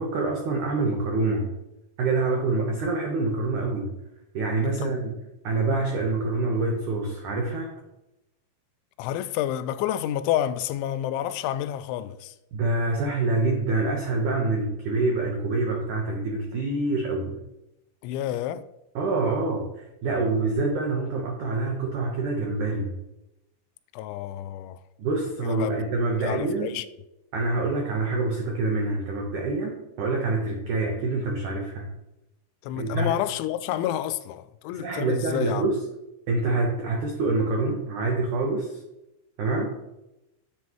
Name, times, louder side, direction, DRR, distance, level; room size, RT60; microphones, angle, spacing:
voice 1, 0.0-1.5 2.0-4.0 4.3-5.1 5.4-7.7 12.5-17.4 19.0-23.0 25.0-26.8 27.3-31.9 32.8-33.1 34.7-35.9 36.3-38.8 39.4-39.8, right 3 dB, 85° right, 1.7 m, -26 dB
voice 2, 9.0-12.3 18.0-18.6 23.9-24.8 25.4-25.8 26.2-26.9 32.6-35.7, left 12 dB, 90° left, 2.9 m, -29 dB
11.0 x 7.6 x 3.0 m
omnidirectional pair, 5.2 m